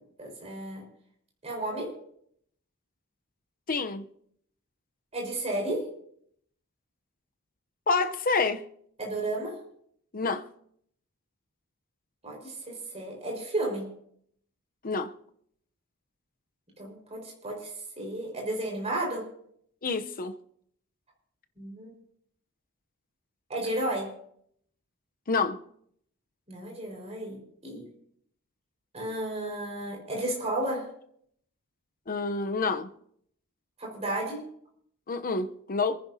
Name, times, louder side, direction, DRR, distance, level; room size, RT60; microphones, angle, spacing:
voice 1, 0.2-0.8 1.4-1.9 5.1-5.9 9.0-9.5 12.2-13.9 16.8-19.3 21.6-21.9 23.5-24.1 26.5-27.9 28.9-30.9 33.8-34.4, right 1 dB, 30° right, 5.0 m, -33 dB
voice 2, 3.7-4.1 7.9-8.6 10.1-10.4 14.8-15.1 19.8-20.3 25.3-25.6 32.1-32.9 35.1-36.0, left 4 dB, 40° left, 0.8 m, -28 dB
27.0 x 10.5 x 2.8 m
head